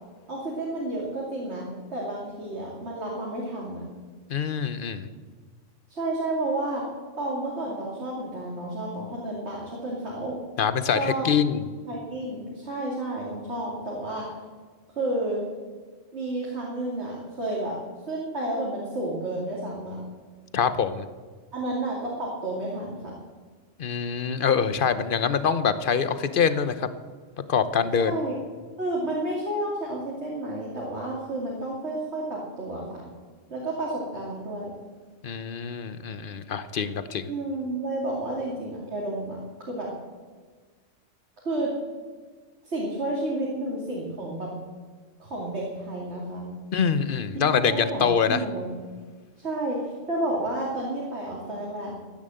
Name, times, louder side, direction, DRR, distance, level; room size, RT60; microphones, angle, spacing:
voice 1, 0.3-3.8 5.9-6.9 7.2-10.4 10.9-11.3 11.9-14.4 15.0-15.4 16.1-17.8 18.0-20.0 21.5-23.1 28.0-28.4 28.8-33.0 33.5-34.7 37.3-39.4 39.7-39.9 41.4-41.7 42.6-44.5 45.2-46.5 47.3-48.8 49.4-51.9, right 1 dB, 60° right, -4 dB, 2.9 m, -31 dB
voice 2, 4.3-5.1 10.6-11.7 20.5-21.0 23.8-26.9 27.5-28.1 35.2-37.2 46.7-48.4, left 6 dB, 50° left, 12 dB, 0.9 m, -24 dB
14.5 x 10.0 x 7.7 m, 1.5 s
omnidirectional pair, 1.3 m